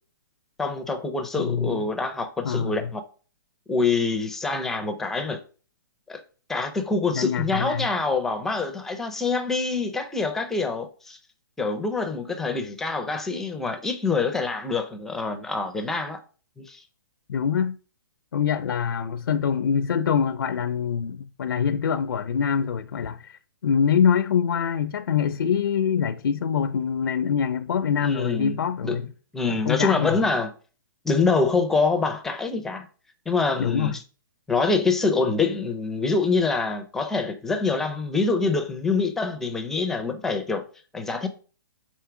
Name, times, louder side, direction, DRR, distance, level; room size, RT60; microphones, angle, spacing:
voice 1, 0.6-3.0 3.7-5.4 6.1-6.2 6.5-11.2 11.6-16.2 16.6-16.8 28.0-28.6 28.8-29.0 29.3-30.5 31.0-32.9 33.3-34.0 34.5-40.6 40.9-41.3, left 4 dB, 5° left, 0.4 m, -25 dB
voice 2, 1.4-1.8 2.4-2.9 7.1-7.9 17.3-17.8 18.3-29.1 29.5-30.2 33.6-33.9, left 7 dB, 75° left, 0.5 m, -24 dB
4.6 x 4.3 x 5.8 m
hypercardioid pair, 165°, 12 cm